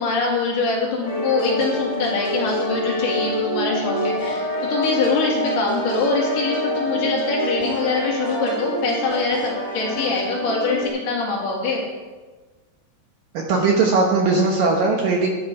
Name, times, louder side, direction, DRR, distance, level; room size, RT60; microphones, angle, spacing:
voice 1, 0.0-11.8, left 3 dB, 60° left, -3 dB, 3.9 m, -24 dB
sound 1, 1.0-10.9, equal, 30° left, 4.9 m, -26 dB
voice 2, 13.3-15.3, right 3 dB, 75° right, 0 dB, 2.1 m, -19 dB
12.0 x 9.7 x 4.8 m, 1.3 s
omnidirectional pair, 5.3 m